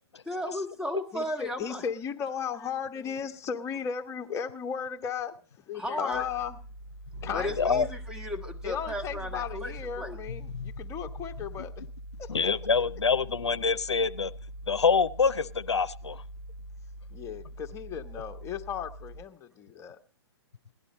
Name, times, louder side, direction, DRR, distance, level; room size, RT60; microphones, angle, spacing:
voice 1, 0.2-1.8 5.7-6.2 7.3-10.2, left 1 dB, 5° right, 3 dB, 1.3 m, -35 dB
voice 2, 1.1-6.6 7.2-7.8 8.6-11.7 12.2-12.5 17.1-20.0, left 7 dB, 20° left, 5 dB, 1.1 m, -36 dB
sound 1, 6.1-19.2, right 1 dB, 50° right, 1.1 m, -43 dB
voice 3, 7.6-7.9 12.3-14.3 14.7-16.2, left 5 dB, 90° left, 12 dB, 0.6 m, -25 dB
17.5 x 11.0 x 4.2 m, 0.41 s
hypercardioid pair, 125°, 14 cm